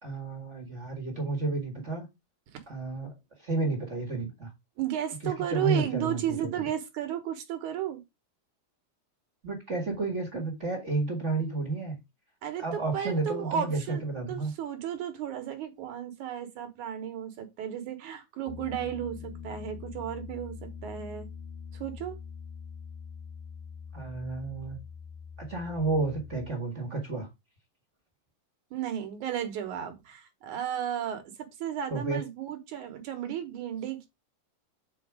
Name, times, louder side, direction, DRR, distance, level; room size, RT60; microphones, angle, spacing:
voice 1, 0.0-2.1 2.7-3.1 3.4-4.5 5.5-6.7 9.4-12.0 12.6-14.5 23.9-24.8 25.4-27.3 31.9-32.2, right 3 dB, 30° right, 1.3 m, -31 dB
voice 2, 4.8-8.0 12.4-14.0 14.3-21.3 21.7-22.2 28.7-34.1, right 10 dB, 65° right, 2.4 m, -34 dB
Piano, 18.5-26.5, left 6 dB, 75° left, 2.4 m, -43 dB
8.1 x 4.5 x 4.8 m
omnidirectional pair, 3.9 m